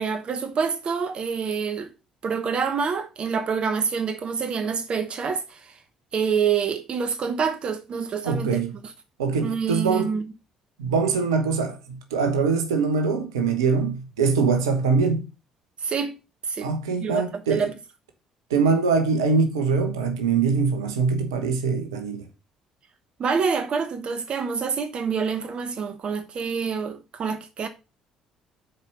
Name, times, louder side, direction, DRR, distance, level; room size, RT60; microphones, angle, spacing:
voice 1, 0.0-1.9 2.2-5.8 6.1-8.6 9.4-10.2 15.8-16.2 16.5-16.7 17.0-17.7 23.2-27.7, right 6 dB, 45° right, 1.0 m, -27 dB
voice 2, 8.2-8.7 9.2-10.2 10.8-15.3 16.6-17.7 18.5-22.3, right 5 dB, 75° right, 1.1 m, -23 dB
7.2 x 4.7 x 5.4 m
figure-of-eight pair, 50°, 2 cm